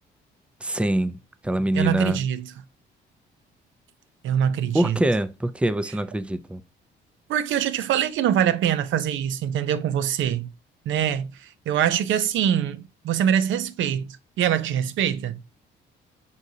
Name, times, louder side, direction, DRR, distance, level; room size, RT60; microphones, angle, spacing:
voice 1, 0.6-1.2 1.4-2.2 4.7-6.6, right 1 dB, 5° right, 0.4 m, -24 dB
voice 2, 1.7-2.5 4.2-5.0 7.3-10.5 10.9-14.1 14.4-15.4, right 9 dB, 75° right, 0.6 m, -24 dB
4.8 x 4.1 x 2.7 m
cardioid pair, 90°, 20 cm